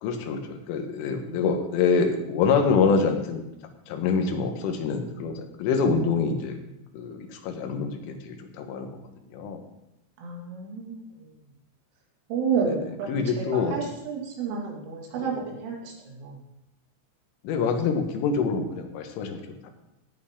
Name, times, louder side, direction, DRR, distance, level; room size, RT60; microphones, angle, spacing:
voice 1, 0.0-3.4 3.9-6.6 6.9-9.0 9.3-9.6 12.7-12.8 13.1-13.8 15.2-15.4 17.4-19.7, left 5 dB, 90° left, 4 dB, 3.9 m, -26 dB
voice 2, 10.2-11.0 12.3-16.4, right 5 dB, 85° right, -1 dB, 4.9 m, -31 dB
17.5 x 8.9 x 3.8 m, 0.86 s
omnidirectional pair, 5.6 m